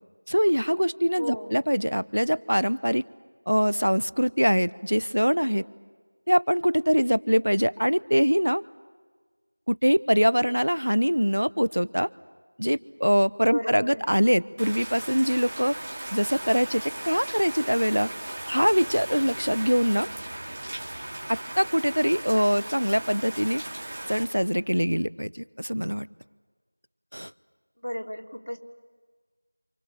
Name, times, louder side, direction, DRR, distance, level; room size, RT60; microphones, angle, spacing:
voice 1, 0.3-3.0 3.5-5.6 6.3-8.6 9.7-12.1 12.6-15.8 16.1-18.1 18.5-20.1 21.6-23.6 24.1-26.1 27.1-27.3, equal, 85° right, 19 dB, 0.9 m, -23 dB
voice 2, 1.2-1.6 13.4-14.0 27.8-28.6, equal, 80° left, 2 dB, 3.5 m, -34 dB
Rain, 14.6-24.2, right 1 dB, 20° right, 2.2 m, -37 dB
28.0 x 27.5 x 7.3 m, 1.5 s
figure-of-eight pair, 175°, 0 cm